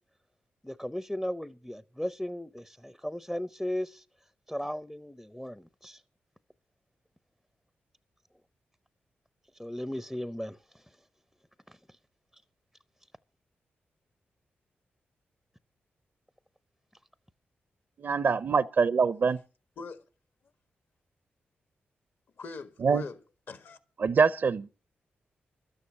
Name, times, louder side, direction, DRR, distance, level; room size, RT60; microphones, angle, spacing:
voice 1, 0.6-4.0 4.5-6.0 9.5-10.8 11.7-11.8 12.3-12.4, left 1 dB, 5° left, 0.6 m, -36 dB
voice 2, 18.0-19.4 22.8-23.1 24.0-24.7, right 5 dB, 55° right, 0.6 m, -24 dB
voice 3, 22.4-23.2 23.5-23.8, left 4 dB, 65° left, 1.5 m, -41 dB
12.5 x 9.7 x 6.4 m
cardioid pair, 70°, 4 cm